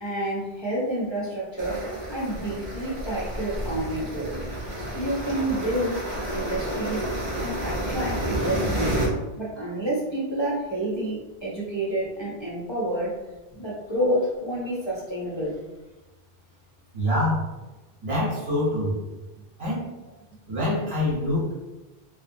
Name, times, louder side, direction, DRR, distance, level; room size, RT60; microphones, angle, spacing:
voice 1, 0.0-4.4 4.9-7.1 7.4-9.0 9.4-13.2 13.5-15.6, right 1 dB, 35° left, -7 dB, 0.4 m, -29 dB
sound 1, 1.6-9.1, right 1 dB, 35° right, 0.5 m, -30 dB
voice 2, 16.9-17.5 18.0-19.0 19.6-19.9 20.5-21.6, left 1 dB, 75° right, -5 dB, 1.1 m, -25 dB
2.6 x 2.1 x 2.6 m, 1.1 s
omnidirectional pair, 1.1 m